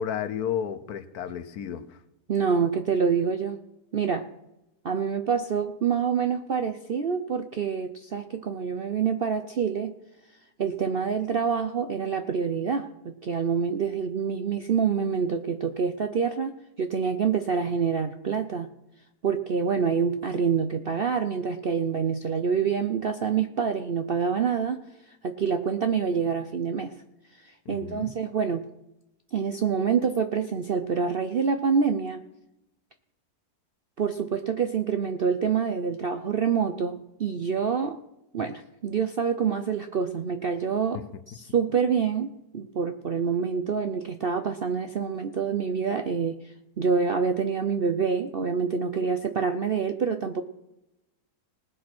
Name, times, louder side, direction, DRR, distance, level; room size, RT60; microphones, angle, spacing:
voice 1, 0.0-1.8 27.7-28.1, left 8 dB, 70° left, 13 dB, 1.3 m, -32 dB
voice 2, 2.3-3.6 3.9-4.3 4.8-9.9 10.6-18.7 19.2-24.8 25.2-26.9 27.4-28.7 29.3-32.2 34.0-38.0 38.3-41.0 41.3-50.4, right 6 dB, 55° right, 7 dB, 0.6 m, -26 dB
19.5 x 6.5 x 6.0 m, 0.91 s
omnidirectional pair, 1.7 m